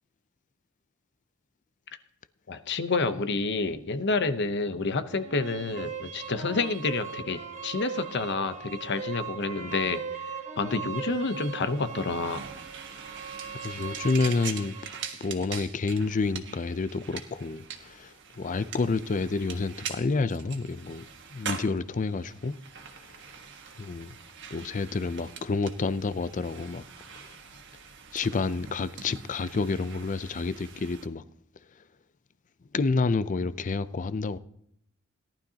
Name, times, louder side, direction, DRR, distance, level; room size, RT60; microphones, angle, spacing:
voice 1, 2.5-12.4, left 3 dB, 55° left, 0.8 m, -29 dB
sound 1, 5.1-15.1, right 6 dB, 35° right, 1.0 m, -39 dB
sound 2, 11.3-31.1, right 7 dB, 60° right, 1.4 m, -43 dB
voice 2, 13.5-14.7 15.2-21.0 21.3-22.6 23.8-24.2 24.5-26.8 27.1-27.3 28.1-31.2 32.7-34.4, left 3 dB, 40° left, 0.5 m, -29 dB
17.5 x 11.5 x 2.8 m
head